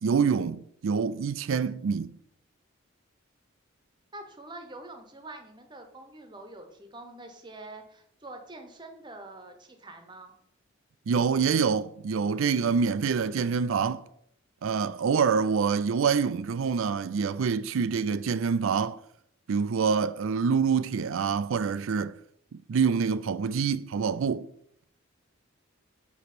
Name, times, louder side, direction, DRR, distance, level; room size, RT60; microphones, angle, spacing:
voice 1, 0.0-2.2 11.1-14.0 14.6-19.0 19.5-22.1 22.5-24.5, right 6 dB, 75° right, 0.4 m, -26 dB
voice 2, 4.1-10.3, right 2 dB, 20° right, 0.9 m, -45 dB
8.3 x 3.0 x 6.0 m
head